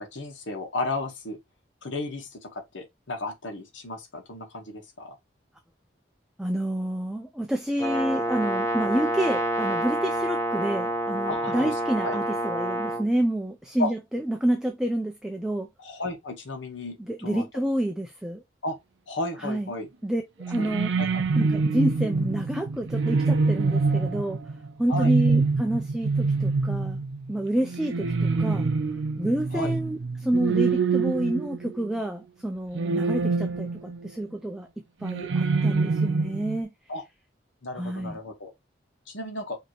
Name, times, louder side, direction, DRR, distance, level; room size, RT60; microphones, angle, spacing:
voice 1, 0.0-1.4 1.8-5.2 11.3-12.2 13.8-13.9 15.8-17.0 17.2-17.4 18.6-18.8 19.1-19.9 20.6-21.2 24.9-25.1 29.5-29.7 36.9-37.0 37.6-38.5 39.1-39.6, left 2 dB, 80° left, 1.2 m, -34 dB
voice 2, 6.4-15.7 17.1-18.4 19.4-19.7 20.0-20.2 20.5-20.9 21.4-24.4 24.8-27.0 27.3-28.7 29.2-34.7 35.0-36.7 37.8-38.2, right 1 dB, 5° right, 0.4 m, -28 dB
Brass instrument, 7.8-13.0, right 1 dB, 15° left, 1.1 m, -28 dB
sound 1, 20.4-32.0 32.7-34.1 35.0-36.6, right 4 dB, 75° right, 0.5 m, -25 dB
5.1 x 2.9 x 3.0 m
head